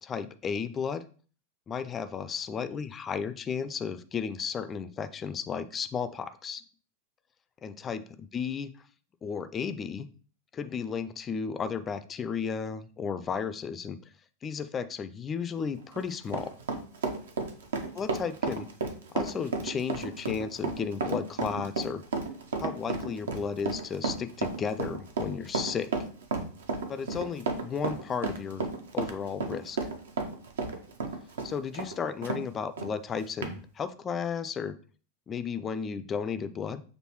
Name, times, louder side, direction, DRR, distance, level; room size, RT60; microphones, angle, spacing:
voice 1, 0.0-1.0 1.7-6.6 7.6-8.7 9.2-10.1 10.5-14.0 14.4-16.5 17.9-18.7 19.1-22.0 22.6-25.9 26.9-28.6 28.9-29.8 31.4-34.8 35.3-36.8, left 6 dB, 25° left, 12 dB, 0.3 m, -34 dB
Run, 15.8-32.4 32.8-32.9 33.4-33.5, right 4 dB, 65° right, 0.6 m, -33 dB
6.3 x 2.6 x 3.0 m, 0.41 s
figure-of-eight pair, 90°, 0 cm